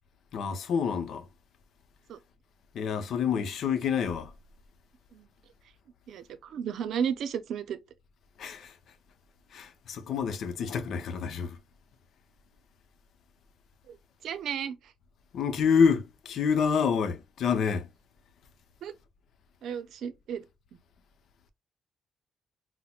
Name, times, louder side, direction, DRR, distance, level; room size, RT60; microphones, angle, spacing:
voice 1, 0.3-1.3 2.7-4.3 8.4-8.8 9.5-11.6 15.3-17.9, left 6 dB, 70° left, 0.7 m, -27 dB
voice 2, 6.1-7.8 13.9-14.0 14.2-14.8 18.8-18.9 19.6-20.4, right 8 dB, 75° right, 0.5 m, -33 dB
5.7 x 2.1 x 2.3 m
cardioid pair, 90°, 0 cm